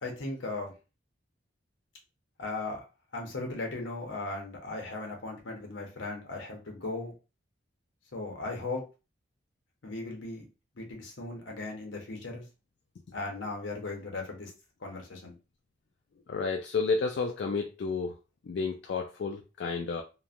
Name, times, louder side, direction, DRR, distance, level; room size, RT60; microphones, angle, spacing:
voice 1, 0.0-0.7 2.4-2.8 3.1-7.1 8.1-8.8 9.8-10.5 10.8-12.4 13.1-14.5 14.8-15.4, left 2 dB, 75° left, 1 dB, 0.9 m, -37 dB
voice 2, 16.3-18.1 18.4-20.0, left 4 dB, 60° left, 2 dB, 0.3 m, -31 dB
3.0 x 2.1 x 2.5 m, 0.31 s
head